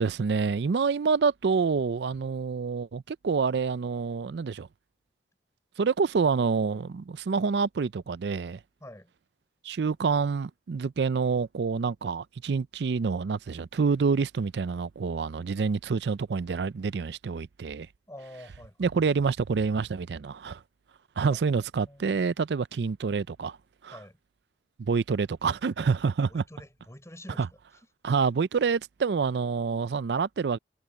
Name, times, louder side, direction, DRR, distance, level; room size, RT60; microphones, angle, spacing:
voice 1, 0.0-4.7 5.8-8.6 9.6-17.9 18.8-20.6 21.2-23.6 23.8-24.0 24.8-26.4 27.4-27.5 28.0-30.6, right 5 dB, 70° right, 0.4 m, -27 dB
voice 2, 8.8-9.1 18.1-18.9 21.2-21.5 21.8-22.3 23.9-24.2 26.2-27.5 28.0-28.1, left 1 dB, 15° left, 5.9 m, -47 dB
head